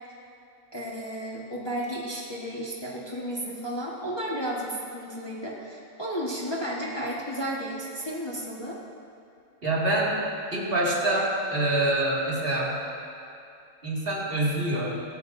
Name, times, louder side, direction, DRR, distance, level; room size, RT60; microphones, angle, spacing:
voice 1, 0.7-8.8, equal, 20° left, -4 dB, 1.3 m, -33 dB
voice 2, 9.6-10.2 10.5-12.8 13.8-15.0, right 1 dB, 45° right, -5 dB, 2.3 m, -25 dB
17.0 x 14.5 x 2.6 m, 2.6 s
omnidirectional pair, 1.4 m